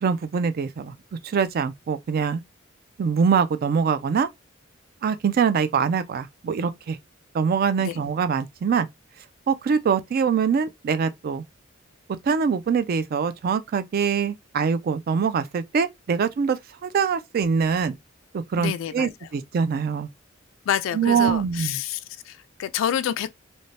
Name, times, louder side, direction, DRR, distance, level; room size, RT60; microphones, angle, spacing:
voice 1, 0.0-0.9 1.2-2.4 3.0-4.3 5.0-7.0 7.3-8.9 9.5-11.4 12.2-17.9 18.3-20.1 20.9-21.8, right 6 dB, 50° right, 0.3 m, -23 dB
voice 2, 18.6-19.1 20.7-23.3, left 9 dB, 70° left, 0.3 m, -28 dB
2.7 x 2.1 x 3.1 m
head